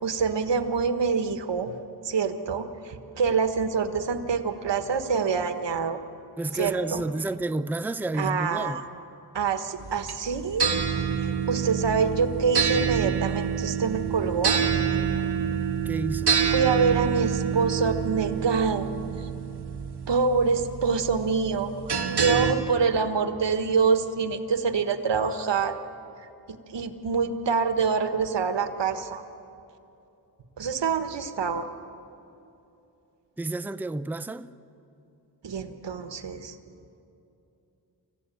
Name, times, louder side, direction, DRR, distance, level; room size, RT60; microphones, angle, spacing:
voice 1, 0.0-1.7 2.0-6.0 6.5-7.0 8.2-8.8 9.3-10.7 11.2-14.6 16.4-18.9 19.2-19.3 20.1-25.8 26.5-29.2 30.6-31.7 35.4-36.5, right 5 dB, 85° right, 9 dB, 1.4 m, -26 dB
voice 2, 6.4-8.8 15.9-16.4 33.4-34.5, right 2 dB, 5° right, 13 dB, 0.6 m, -30 dB
sound 1, 9.8-22.5, right 7 dB, 65° right, 1.6 m, -27 dB
27.5 x 15.5 x 9.2 m, 2.8 s
cardioid pair, 65°, 42 cm